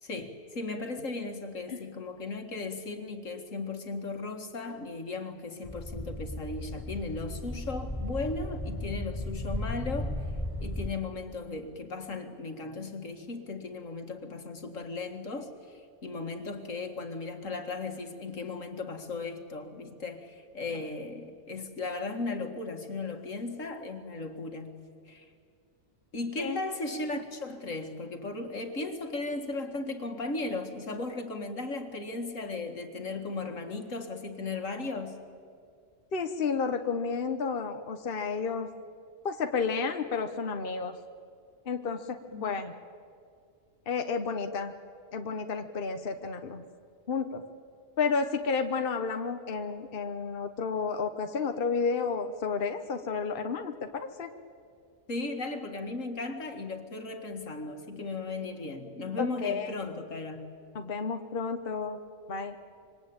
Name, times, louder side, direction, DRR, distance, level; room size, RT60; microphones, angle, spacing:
voice 1, 0.0-10.1 10.6-24.8 25.1-25.3 26.1-35.1 42.3-42.6 55.1-60.5, left 3 dB, 75° left, 6 dB, 2.4 m, -36 dB
sound 1, 5.6-10.9, left 1 dB, ahead, 5.8 m, -35 dB
voice 2, 36.1-38.7 39.2-41.0 41.7-42.7 43.9-44.7 45.1-46.6 47.1-47.4 48.0-54.3 59.2-59.7 60.7-62.0 62.3-62.6, left 5 dB, 45° left, 7 dB, 1.2 m, -31 dB
26.5 x 24.0 x 8.8 m, 2.3 s
omnidirectional pair, 1.3 m